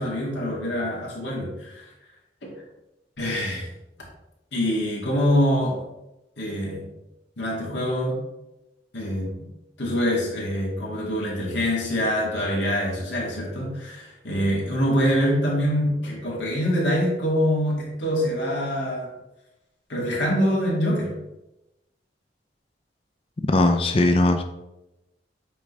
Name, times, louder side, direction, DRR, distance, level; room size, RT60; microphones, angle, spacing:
voice 1, 0.0-1.7 2.4-2.5 3.2-3.7 4.5-5.8 6.4-6.9 7.4-8.2 8.9-9.3 9.8-19.1 19.9-21.1, equal, 85° left, -4 dB, 2.3 m, -24 dB
voice 2, 23.5-24.4, left 2 dB, 30° left, 6 dB, 0.4 m, -19 dB
8.5 x 3.9 x 3.3 m, 0.94 s
head